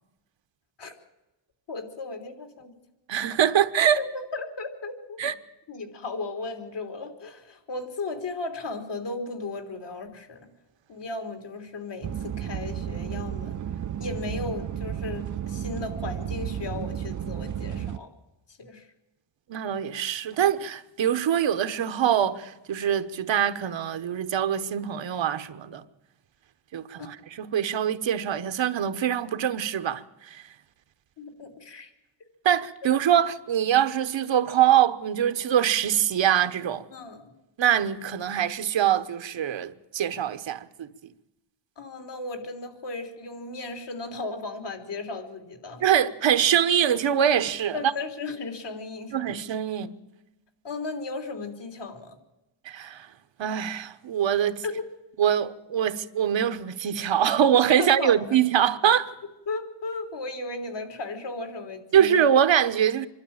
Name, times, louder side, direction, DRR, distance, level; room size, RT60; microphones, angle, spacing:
voice 1, 1.7-2.8 4.0-5.2 5.7-10.4 10.9-13.6 14.0-18.1 18.5-18.9 27.0-27.1 31.2-31.9 36.9-37.2 41.8-45.9 47.7-49.4 50.6-52.2 54.6-54.8 57.8-58.4 59.5-62.3, left 3 dB, 60° left, 3.5 m, -35 dB
voice 2, 3.1-4.0 5.2-5.3 19.5-25.8 26.7-30.4 32.4-36.9 37.6-40.9 45.8-47.9 49.1-49.9 52.6-53.1 53.4-54.6 55.2-59.1 61.9-63.1, right 9 dB, 70° right, 1.2 m, -23 dB
sound 1, 12.0-18.0, right 9 dB, 40° right, 0.6 m, -33 dB
25.5 x 12.5 x 8.8 m
cardioid pair, 100°, 46 cm